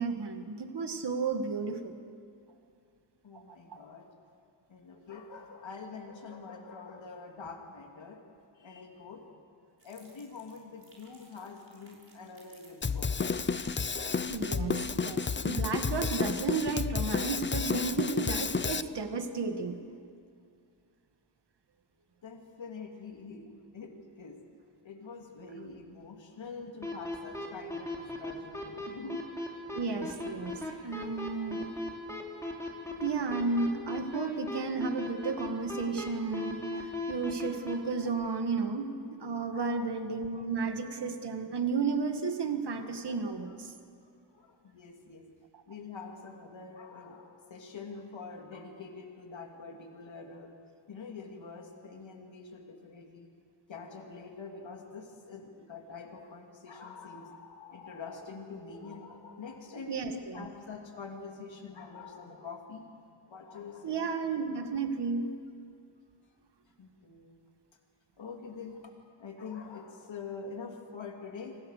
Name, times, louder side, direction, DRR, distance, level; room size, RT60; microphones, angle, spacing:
voice 1, 0.0-2.0 3.3-3.4 3.7-3.8 14.3-19.8 29.7-31.7 33.0-43.7 45.5-45.6 59.9-60.5 63.8-65.4, right 4 dB, 65° right, 6 dB, 2.0 m, -33 dB
voice 2, 3.2-4.1 4.7-8.2 8.6-9.2 9.8-13.3 22.2-24.4 24.8-29.2 39.5-40.1 40.4-40.5 42.8-43.4 44.0-45.3 45.7-50.5 50.9-53.3 53.7-62.9 63.3-64.0 66.8-67.4 68.2-68.9 69.2-71.6, left 4 dB, 85° left, 2 dB, 3.0 m, -45 dB
sound 1, 9.8-14.9, right 2 dB, 30° right, 6.0 m, -59 dB
Drum kit, 12.8-18.8, left 5 dB, 25° left, 0.6 m, -31 dB
sound 2, 26.8-37.7, left 2 dB, 5° left, 3.9 m, -36 dB
29.0 x 26.0 x 6.7 m, 2.3 s
wide cardioid pair, 150°, 44 cm